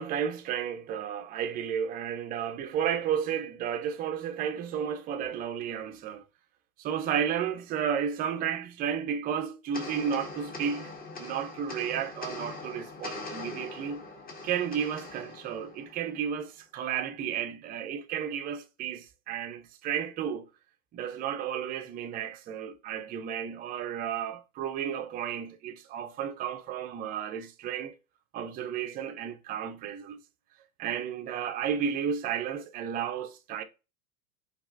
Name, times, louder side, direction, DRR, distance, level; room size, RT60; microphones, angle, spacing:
voice 1, 0.0-6.2 6.8-10.9 11.2-14.0 14.4-20.5 20.9-28.0 28.3-30.2 30.8-33.6, right 8 dB, 20° right, 0.4 m, -32 dB
sound 1, 9.7-16.4, left 3 dB, 20° left, 0.8 m, -42 dB
4.9 x 2.9 x 2.4 m
hypercardioid pair, 90°, 46 cm